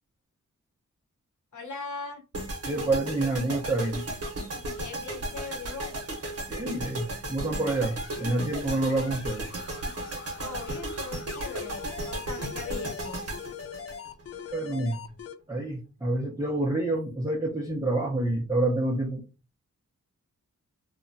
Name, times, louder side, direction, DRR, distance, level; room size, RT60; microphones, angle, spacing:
voice 1, 1.5-2.2 4.7-5.9 10.4-13.2, left 4 dB, 70° left, 2 dB, 1.0 m, -39 dB
sound 1, 2.3-14.5, right 1 dB, 50° right, 0.9 m, -35 dB
voice 2, 2.7-4.1 6.5-9.4 14.5-15.0 15.5-19.2, right 2 dB, 10° right, -3 dB, 0.6 m, -28 dB
sound 2, 7.7-15.4, left 8 dB, 50° left, 0.4 m, -43 dB
2.9 x 2.1 x 2.6 m, 0.30 s
wide cardioid pair, 75°, 31 cm